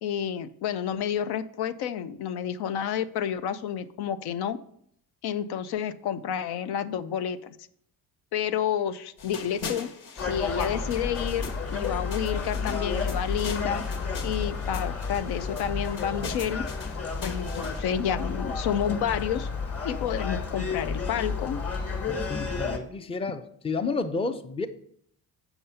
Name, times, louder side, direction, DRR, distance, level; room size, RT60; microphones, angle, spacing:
voice 1, 0.0-4.6 5.2-7.6 8.3-9.9 10.2-13.8 14.2-16.6 17.2-19.5 19.8-21.6, left 9 dB, 75° left, 12 dB, 0.7 m, -30 dB
sound 1, 9.2-17.8, left 5 dB, 60° left, 1.5 m, -42 dB
Gull seagull, 10.2-22.8, left 4 dB, 35° left, 1.4 m, -31 dB
voice 2, 22.1-24.7, left 3 dB, 15° left, 9 dB, 0.5 m, -31 dB
7.2 x 5.7 x 5.5 m, 0.68 s
cardioid pair, 105°, 38 cm